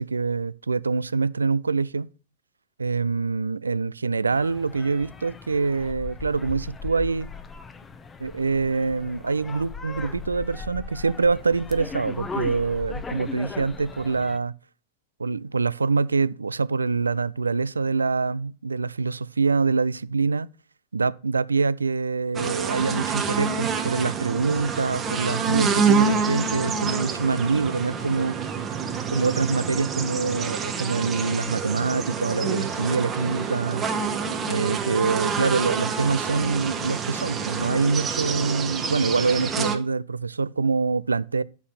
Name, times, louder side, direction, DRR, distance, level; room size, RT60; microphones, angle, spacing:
voice 1, 0.0-2.1 2.8-7.3 8.2-14.5 15.2-20.5 20.9-28.4 29.1-33.8 34.5-41.4, right 4 dB, 75° right, 0.3 m, -25 dB
sound 1, 4.3-14.4, left 4 dB, 15° left, 0.7 m, -38 dB
sound 2, 22.3-39.8, right 5 dB, 20° right, 1.1 m, -27 dB
8.1 x 5.5 x 4.1 m
figure-of-eight pair, 90°, 0 cm